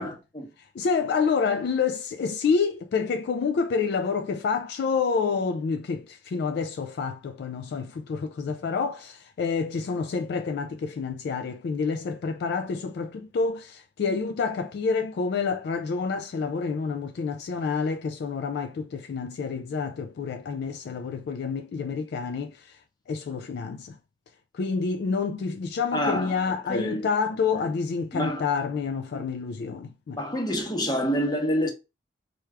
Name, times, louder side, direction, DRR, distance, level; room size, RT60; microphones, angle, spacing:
voice 1, 0.0-0.5 25.9-26.4 26.7-27.1 27.5-27.6 28.1-28.4 29.1-29.2 30.1-31.7, equal, 20° left, 0.8 m, -27 dB
voice 2, 0.6-24.0 24.5-30.2, left 5 dB, 60° left, 0.3 m, -28 dB
4.5 x 2.3 x 3.2 m
head